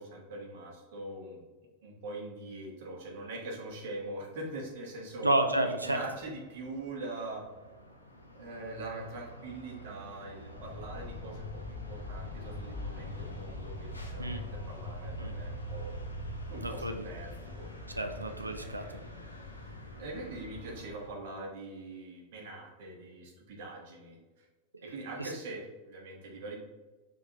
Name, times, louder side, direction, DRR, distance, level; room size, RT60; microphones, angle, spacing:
voice 1, 0.0-1.4 1.8-5.3 5.7-7.4 8.3-15.9 16.5-17.7 18.6-19.0 19.6-24.4 24.8-26.6, right 2 dB, 50° right, -1 dB, 1.2 m, -43 dB
sound 1, 4.1-21.1, right 2 dB, 85° left, 0.8 m, -48 dB
voice 2, 5.2-6.0 14.2-14.4 15.2-15.3 16.6-17.0 17.9-19.0 24.8-24.9 25.2-25.3, right 1 dB, 80° right, 7 dB, 0.4 m, -31 dB
sound 2, 10.6-20.8, left 3 dB, 30° left, 0.7 m, -43 dB
5.0 x 3.8 x 2.8 m, 1.2 s
figure-of-eight pair, 90°, 0 cm